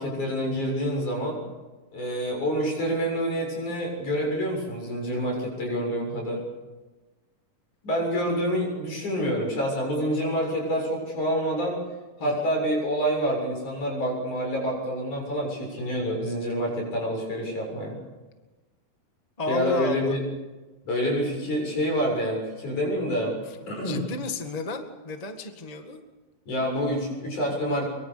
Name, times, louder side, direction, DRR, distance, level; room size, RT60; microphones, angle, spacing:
voice 1, 0.0-1.4 1.9-6.4 7.8-11.8 12.2-18.0 19.5-20.2 20.8-23.4 23.7-24.1 26.5-27.9, equal, 55° left, 0 dB, 8.7 m, -27 dB
voice 2, 19.4-20.2 23.6-26.0, left 3 dB, 25° left, 5 dB, 0.8 m, -33 dB
24.5 x 23.5 x 6.9 m, 1.2 s
omnidirectional pair, 4.2 m